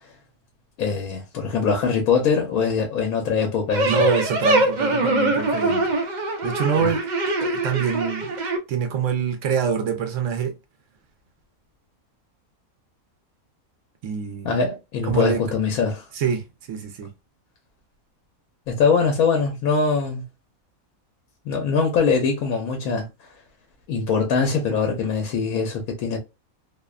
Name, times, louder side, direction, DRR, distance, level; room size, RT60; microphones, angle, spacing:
voice 1, 0.8-3.9 6.8-6.9 14.4-16.0 18.7-20.2 21.5-23.1 23.9-26.2, left 5 dB, 80° left, 1.1 m, -22 dB
sound 1, 3.7-8.6, right 2 dB, 85° right, 0.4 m, -23 dB
voice 2, 3.8-5.9 6.4-7.0 7.4-8.3 8.7-10.5 14.0-14.5 15.0-15.4 16.1-17.1, right 6 dB, 70° right, 0.9 m, -25 dB
2.7 x 2.1 x 2.2 m
omnidirectional pair, 1.5 m